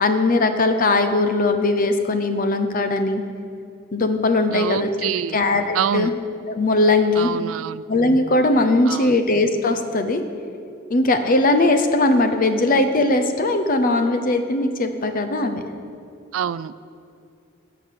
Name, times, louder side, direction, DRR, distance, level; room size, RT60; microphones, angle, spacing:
voice 1, 0.0-3.2 3.9-6.1 6.5-7.3 7.9-10.2 10.9-15.6, left 2 dB, 45° left, 8 dB, 0.7 m, -19 dB
voice 2, 4.5-5.4 5.7-6.1 7.2-7.8 8.9-9.2 16.3-16.8, right 9 dB, 75° right, 17 dB, 0.3 m, -26 dB
12.0 x 5.8 x 6.8 m, 2.5 s
head